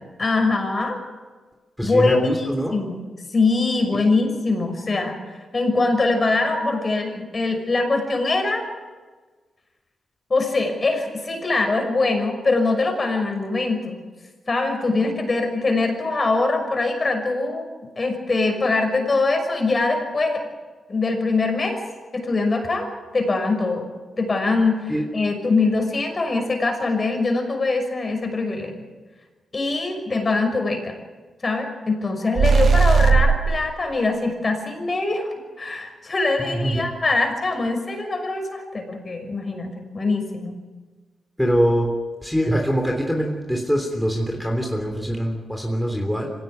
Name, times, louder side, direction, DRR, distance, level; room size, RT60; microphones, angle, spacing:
voice 1, 0.2-1.0 1.8-3.0 3.3-5.1 5.5-8.6 10.3-14.0 14.5-17.7 18.0-20.5 20.9-21.8 22.1-22.9 23.1-23.9 24.2-28.7 29.5-30.9 31.4-40.6, left 3 dB, 35° left, 4 dB, 6.1 m, -23 dB
voice 2, 1.8-2.8 3.9-4.1 24.9-25.0 36.5-36.9 41.4-41.9 42.2-46.3, equal, ahead, 1 dB, 3.4 m, -23 dB
sound 1, 32.4-33.6, right 5 dB, 60° right, 1.4 m, -16 dB
25.5 x 17.5 x 9.3 m, 1.3 s
cardioid pair, 105°, 0 cm